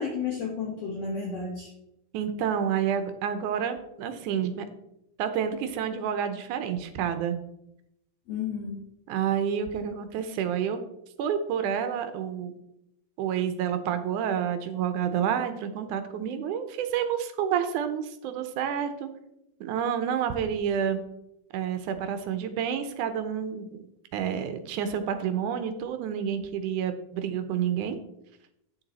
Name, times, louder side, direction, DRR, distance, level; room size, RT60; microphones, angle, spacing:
voice 1, 0.0-1.7 8.3-8.8, left 5 dB, 60° left, -2 dB, 2.1 m, -32 dB
voice 2, 2.1-4.7 5.2-7.4 9.1-10.8 11.2-12.6 13.2-19.1 19.6-21.0 21.5-23.9 24.1-28.0, right 8 dB, 75° right, 9 dB, 2.1 m, -29 dB
8.8 x 7.0 x 4.0 m, 0.82 s
omnidirectional pair, 3.9 m